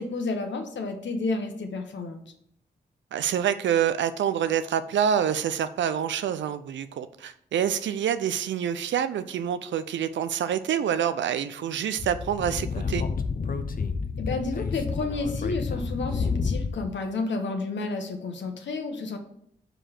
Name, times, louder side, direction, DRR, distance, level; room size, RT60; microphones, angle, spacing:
voice 1, 0.0-2.2 14.2-19.2, left 3 dB, 80° left, 5 dB, 1.0 m, -31 dB
voice 2, 3.1-13.0, right 9 dB, 85° right, 12 dB, 0.4 m, -27 dB
Speech / Wind, 12.0-16.9, left 5 dB, 50° left, 0.7 m, -30 dB
5.1 x 4.8 x 5.8 m, 0.69 s
supercardioid pair, 40°, 19 cm